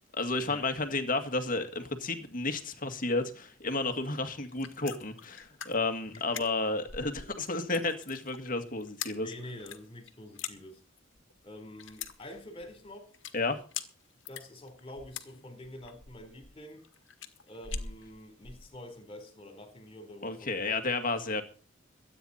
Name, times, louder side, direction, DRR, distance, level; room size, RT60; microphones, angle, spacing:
voice 1, 0.1-9.3 13.3-13.6 20.2-21.4, left 3 dB, 45° left, 2.0 m, -32 dB
sound 1, 4.4-18.7, left 7 dB, 75° left, 1.8 m, -43 dB
voice 2, 9.2-10.8 11.4-13.1 14.3-16.8 17.5-20.8, left 1 dB, 30° left, 3.9 m, -47 dB
22.5 x 9.5 x 4.3 m
head